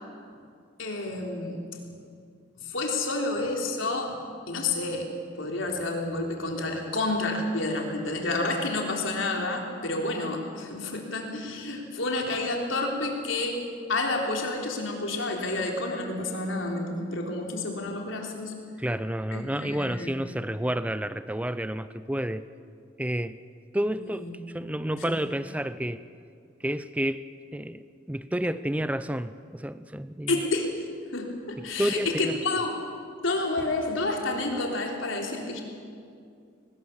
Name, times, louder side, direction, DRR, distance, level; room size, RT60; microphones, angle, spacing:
voice 1, 0.8-1.6 2.6-4.2 4.5-5.1 5.4-13.6 13.9-18.5 19.3-20.3 23.9-24.3 25.0-25.1 30.3-30.8 31.1-32.7 33.2-35.6, left 2 dB, 80° left, 1 dB, 3.6 m, -29 dB
voice 2, 18.8-22.4 23.0-23.4 23.7-24.3 24.5-26.0 26.6-30.3 31.8-32.3, right 1 dB, 5° right, 13 dB, 0.5 m, -30 dB
22.5 x 20.0 x 7.3 m, 2.3 s
head